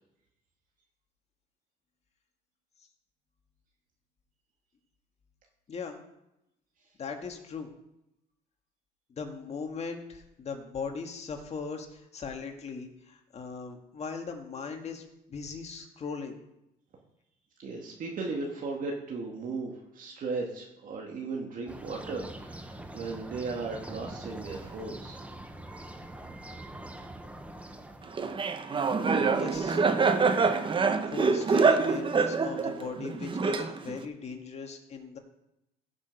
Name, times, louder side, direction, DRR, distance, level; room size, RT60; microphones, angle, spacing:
voice 1, 5.7-6.0 7.0-7.7 9.1-16.4 29.3-29.8 31.1-35.2, left 5 dB, 40° left, 4 dB, 1.8 m, -39 dB
voice 2, 17.6-25.2, right 3 dB, 55° right, 0 dB, 2.0 m, -36 dB
sound 1, 21.7-28.4, right 1 dB, 10° right, 1.1 m, -44 dB
Laughter, 28.2-34.0, right 4 dB, 30° right, 1.0 m, -25 dB
16.0 x 6.2 x 5.4 m, 0.86 s
cardioid pair, 110°, 17 cm